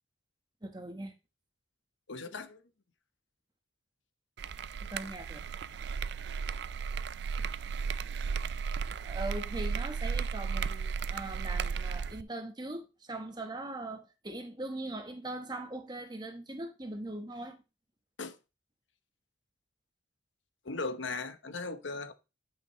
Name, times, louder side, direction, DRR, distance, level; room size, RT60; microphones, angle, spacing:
voice 1, 0.6-1.1 4.9-5.4 9.0-17.6, right 2 dB, 20° right, 1.1 m, -40 dB
voice 2, 2.1-2.6 18.2-18.3 20.6-22.1, left 3 dB, 75° left, 1.0 m, -37 dB
sound 1, 4.4-12.2, right 5 dB, 60° right, 0.4 m, -35 dB
11.0 x 5.9 x 3.1 m
head